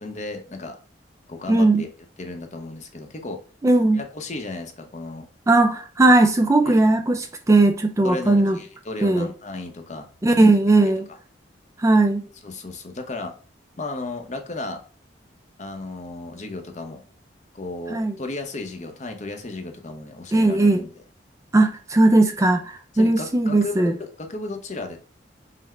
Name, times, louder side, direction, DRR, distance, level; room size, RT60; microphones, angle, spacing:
voice 1, 0.0-0.8 1.3-1.9 2.2-3.4 3.9-5.3 6.7-6.8 8.0-10.5 10.8-10.9 12.4-13.3 13.8-14.8 15.6-17.0 17.5-20.9 22.9-25.0, left 2 dB, 40° left, 0.7 m, -34 dB
voice 2, 1.5-1.8 3.6-4.0 5.5-8.6 9.0-9.3 10.2-11.1 11.8-12.2 17.9-18.2 20.3-20.8 21.5-23.9, right 2 dB, 15° right, 0.3 m, -18 dB
5.6 x 2.0 x 3.2 m
head